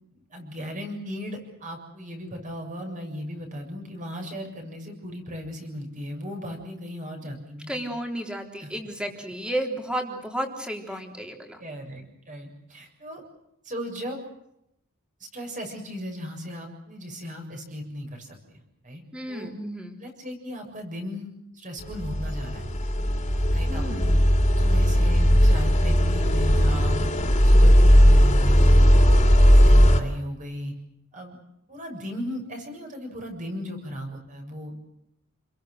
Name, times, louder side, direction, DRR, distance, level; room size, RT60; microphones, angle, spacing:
voice 1, 0.1-7.9 8.6-8.7 11.6-13.2 13.6-14.2 15.2-19.0 19.3-19.5 20.0-22.7 23.5-24.2 24.6-27.1 27.4-30.7 31.1-31.4 31.7-34.7, equal, 35° right, 4 dB, 6.9 m, -36 dB
voice 2, 7.7-11.6 19.1-20.0 23.6-24.1, right 1 dB, 5° right, 3 dB, 3.8 m, -32 dB
sound 1, 21.9-30.0, equal, 35° left, 3.3 m, -17 dB
29.5 x 22.0 x 6.6 m, 0.80 s
head